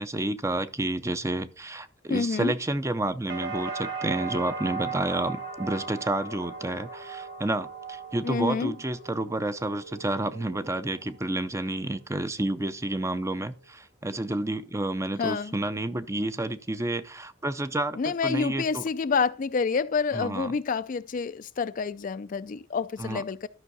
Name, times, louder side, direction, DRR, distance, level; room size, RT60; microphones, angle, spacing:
voice 1, 0.0-18.8 20.1-20.5 23.0-23.2, right 2 dB, 15° right, 0.5 m, -30 dB
voice 2, 2.1-2.5 8.2-8.8 15.2-15.5 18.0-23.5, left 5 dB, 45° left, 0.4 m, -28 dB
sound 1, 3.3-11.2 11.6-12.2, right 4 dB, 60° right, 2.3 m, -38 dB
12.5 x 5.6 x 4.1 m
head